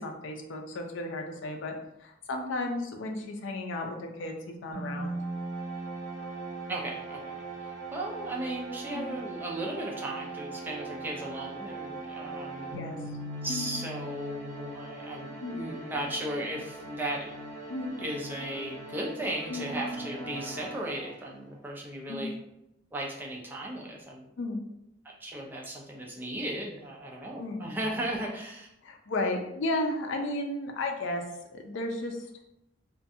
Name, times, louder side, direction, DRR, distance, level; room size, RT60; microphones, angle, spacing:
voice 1, 0.0-1.7 2.0-5.1 8.9-9.1 12.8-13.0 13.5-13.7 15.4-15.6 17.7-17.9 19.5-19.7 22.1-22.3 24.4-24.6 27.4-27.6 28.8-31.2 31.5-32.2, left 2 dB, 85° left, 3 dB, 0.4 m, -33 dB
sound 1, 4.7-21.5, right 2 dB, 70° right, 0.9 m, -40 dB
voice 2, 6.7-12.7 13.4-17.3 18.0-22.3 22.9-24.3 25.0-28.7, right 1 dB, 10° right, -2 dB, 0.4 m, -36 dB
2.4 x 2.2 x 2.6 m, 0.84 s
head